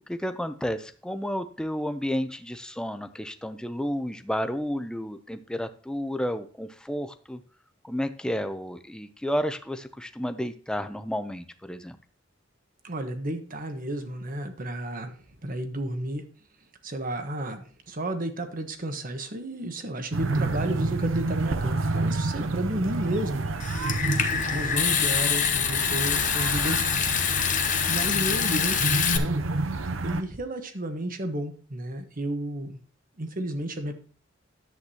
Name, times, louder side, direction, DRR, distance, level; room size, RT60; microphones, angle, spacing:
voice 1, 0.1-7.4 7.8-12.0, equal, 5° left, 9 dB, 0.6 m, -31 dB
voice 2, 12.8-16.3 16.8-23.7 24.5-27.0 27.8-29.5 30.0-32.8 33.2-34.0, right 1 dB, 45° right, 7 dB, 1.2 m, -32 dB
sound 1, 20.1-30.2, right 2 dB, 85° right, 0.7 m, -29 dB
Water tap faucet / Sink (filling or washing) / Trickle dribble, 23.6-29.2, left 8 dB, 40° left, 0.9 m, -25 dB
10.5 x 8.0 x 2.9 m, 0.41 s
head